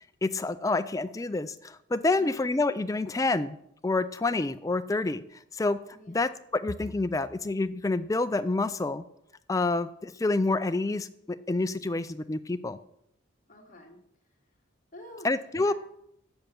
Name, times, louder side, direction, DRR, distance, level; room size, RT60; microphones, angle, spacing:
voice 1, 0.0-3.6 3.8-5.2 5.5-5.8 6.1-9.0 9.5-12.8 15.2-15.7, left 3 dB, 15° left, 12 dB, 0.3 m, -28 dB
voice 2, 5.9-6.3 13.5-14.0 14.9-15.7, left 1 dB, 40° left, 2 dB, 1.4 m, -48 dB
7.7 x 7.2 x 5.9 m, 0.75 s
head